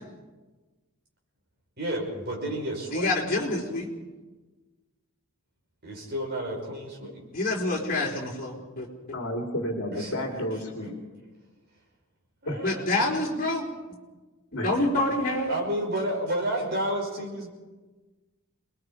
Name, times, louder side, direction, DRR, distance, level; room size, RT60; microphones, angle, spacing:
voice 1, 1.8-3.1 5.8-7.2 9.9-10.1 12.4-13.1 15.5-17.5, right 1 dB, 45° right, -1 dB, 5.5 m, -31 dB
voice 2, 2.9-3.9 7.3-8.9 12.6-13.7 14.5-15.5, left 2 dB, 40° left, -3 dB, 4.5 m, -27 dB
voice 3, 9.1-10.9 12.4-12.6 14.5-14.7, equal, 60° left, 1 dB, 3.0 m, -31 dB
27.0 x 21.5 x 4.9 m, 1.2 s
head